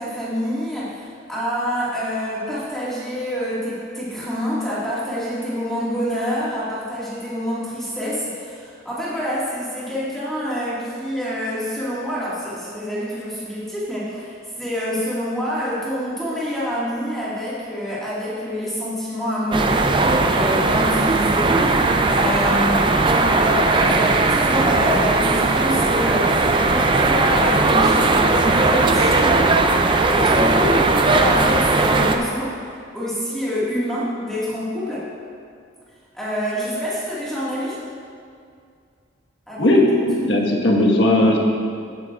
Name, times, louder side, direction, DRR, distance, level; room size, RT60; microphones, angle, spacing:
voice 1, 0.0-29.5 30.1-32.6 32.9-35.1 36.1-37.8 39.5-39.7 40.1-40.3, equal, ahead, -10 dB, 1.8 m, -26 dB
sound 1, 19.5-32.2, right 3 dB, 25° right, 0.4 m, -18 dB
voice 2, 39.6-41.4, left 1 dB, 65° left, -1 dB, 1.5 m, -17 dB
15.5 x 9.1 x 2.4 m, 2.3 s
head